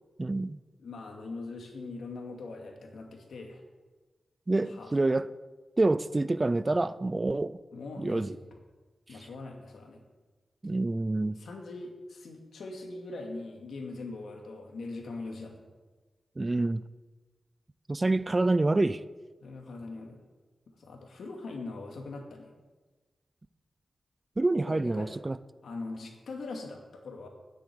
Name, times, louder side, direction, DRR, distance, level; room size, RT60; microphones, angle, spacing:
voice 1, 0.2-0.6 4.5-5.3 5.8-7.6 8.0-8.3 10.6-11.4 16.4-16.8 17.9-19.0 24.4-25.4, right 2 dB, 25° right, 0.4 m, -27 dB
voice 2, 0.8-3.6 4.7-4.9 7.7-8.4 9.1-10.0 11.3-15.6 19.4-20.2 20.8-22.5 24.7-25.1 25.6-27.3, left 3 dB, 90° left, 2.4 m, -41 dB
10.0 x 8.4 x 9.6 m
wide cardioid pair, 125°, 0 cm